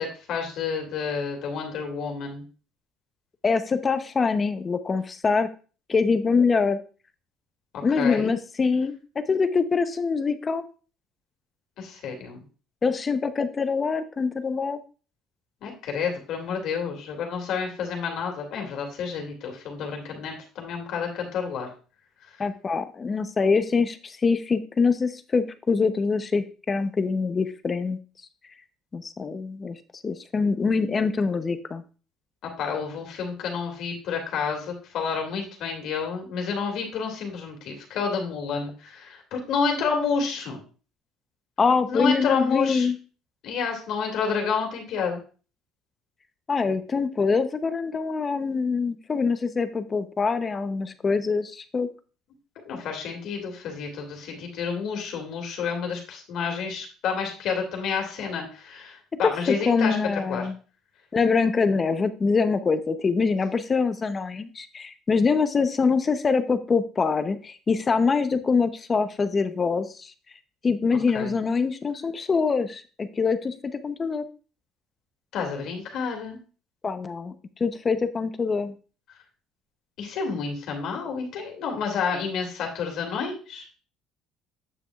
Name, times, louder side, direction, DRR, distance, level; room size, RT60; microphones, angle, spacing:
voice 1, 0.0-2.4 7.7-8.3 11.8-12.4 15.6-21.7 32.6-40.6 41.9-42.9 43.4-45.2 52.6-60.0 60.3-60.4 71.1-71.3 75.3-76.4 80.0-83.7, left 5 dB, 65° left, 3 dB, 2.4 m, -29 dB
voice 2, 3.4-5.5 5.9-6.8 7.8-10.6 12.8-14.8 22.4-28.0 28.9-31.8 41.6-42.9 46.5-51.9 59.2-59.3 59.7-60.6 61.1-70.1 70.6-73.5 73.8-74.2 76.8-77.3 77.6-78.8, left 4 dB, 25° left, 11 dB, 0.7 m, -24 dB
8.6 x 6.9 x 2.4 m, 0.37 s
cardioid pair, 125°, 0 cm